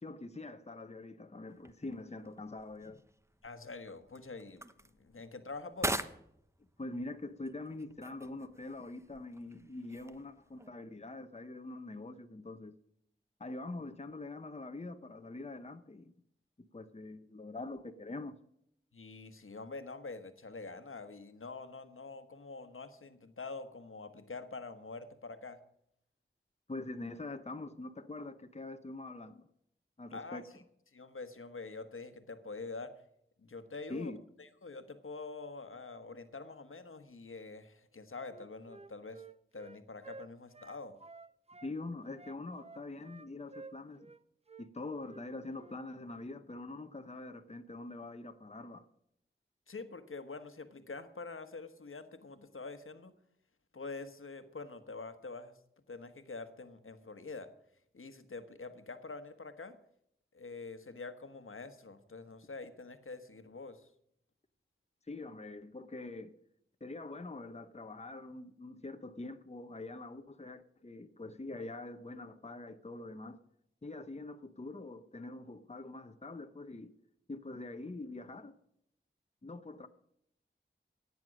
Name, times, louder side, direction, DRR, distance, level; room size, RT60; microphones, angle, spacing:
voice 1, 0.0-3.0 6.8-12.8 13.4-16.1 16.6-18.3 26.7-29.5 30.0-30.4 33.9-34.2 41.6-44.1 44.6-48.9 65.1-66.3 66.8-73.4 73.8-76.9 77.3-78.6 79.4-79.9, left 2 dB, 30° left, 0.9 m, -44 dB
sound 1, 1.5-10.7, right 1 dB, 15° right, 1.0 m, -44 dB
voice 2, 3.4-4.6 5.0-6.0 18.9-25.6 30.1-30.6 30.9-33.0 33.4-34.1 34.4-39.2 39.5-41.0 49.7-53.1 53.7-55.6 55.9-57.5 57.9-59.8 60.3-63.9, left 3 dB, 85° left, 1.2 m, -46 dB
Wind instrument woodwind instrument, 38.2-41.7 42.1-44.2 44.5-44.7 45.0-45.2 45.5-45.8, right 3 dB, 30° right, 0.6 m, -52 dB
16.0 x 9.4 x 6.3 m
wide cardioid pair, 45°, 21 cm